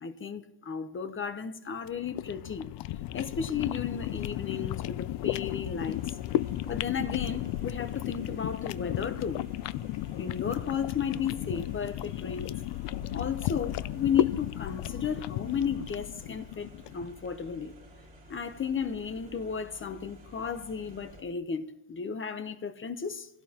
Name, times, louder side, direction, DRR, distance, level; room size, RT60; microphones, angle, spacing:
voice 1, 0.0-2.7 3.1-6.0 6.6-9.4 10.2-12.5 13.1-16.7 16.9-17.7 18.3-23.3, left 7 dB, 25° left, 0.8 m, -34 dB
sound 1, 1.8-17.1, left 14 dB, 60° left, 0.5 m, -34 dB
sound 2, 5.8-21.2, equal, 20° right, 3.6 m, -53 dB
26.5 x 16.5 x 2.9 m
cardioid pair, 160°, 48 cm